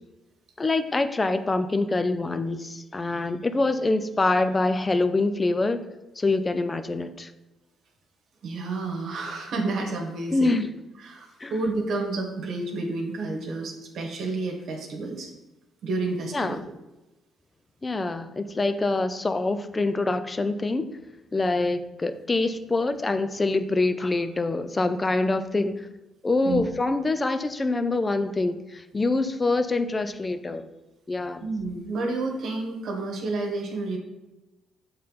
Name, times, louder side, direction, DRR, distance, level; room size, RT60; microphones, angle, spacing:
voice 1, 0.6-5.8 6.2-7.3 10.3-10.8 11.4-11.5 16.3-16.6 17.8-21.0 21.3-25.9 26.2-30.7 31.1-31.5, left 2 dB, 25° left, 11 dB, 0.5 m, -25 dB
voice 2, 8.4-10.6 11.0-15.3 15.8-16.6 26.4-26.6 31.4-34.0, right 3 dB, 70° right, 1 dB, 1.4 m, -30 dB
6.6 x 3.9 x 5.6 m, 1.1 s
cardioid pair, 90°, 0 cm